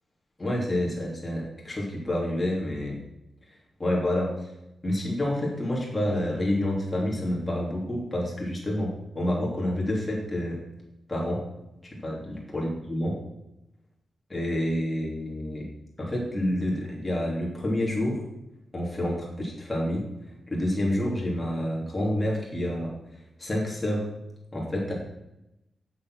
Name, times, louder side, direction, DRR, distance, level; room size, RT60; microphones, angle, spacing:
voice 1, 0.4-3.0 3.8-4.3 4.8-10.6 11.1-11.4 12.0-13.1 14.3-15.6 16.0-18.2 18.7-20.0 20.5-22.9 23.4-24.0 24.5-24.9, left 1 dB, 20° left, -4 dB, 3.0 m, -28 dB
7.4 x 7.0 x 6.2 m, 0.90 s
wide cardioid pair, 120°, 0 cm